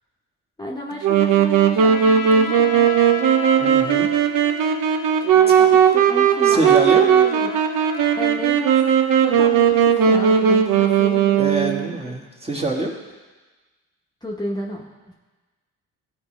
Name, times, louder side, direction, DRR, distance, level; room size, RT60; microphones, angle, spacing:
voice 1, 0.6-2.9 5.3-7.5 8.2-8.8 9.2-11.5 14.2-15.1, left 1 dB, 10° left, -3 dB, 1.2 m, -32 dB
Wind instrument woodwind instrument, 1.0-11.9, right 8 dB, 75° right, 0.8 m, -17 dB
Trumpet, 1.8-8.4, left 5 dB, 75° left, 1.2 m, -34 dB
voice 2, 3.6-4.1 6.4-7.1 11.4-12.9, right 2 dB, 20° right, -1 dB, 1.5 m, -25 dB
13.5 x 4.7 x 3.2 m, 1.2 s
cardioid pair, 80°, 33 cm